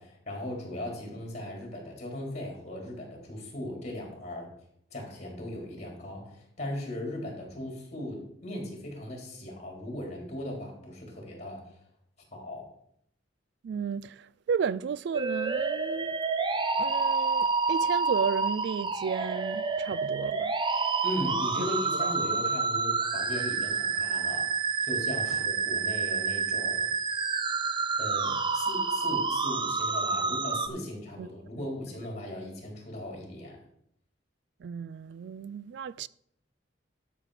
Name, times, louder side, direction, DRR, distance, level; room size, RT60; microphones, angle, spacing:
voice 1, 0.0-4.5 4.9-11.8 12.3-12.7 21.0-24.5 24.8-26.9 28.0-33.6, left 1 dB, 40° left, 3.9 m, -38 dB
voice 2, 13.6-16.2 16.8-20.5 21.6-22.2 25.3-25.4 31.2-31.3 31.6-31.7 34.6-36.1, right 6 dB, 65° right, 0.3 m, -33 dB
sound 1, 15.1-30.7, right 4 dB, 25° right, 0.7 m, -29 dB
12.0 x 6.7 x 5.0 m
head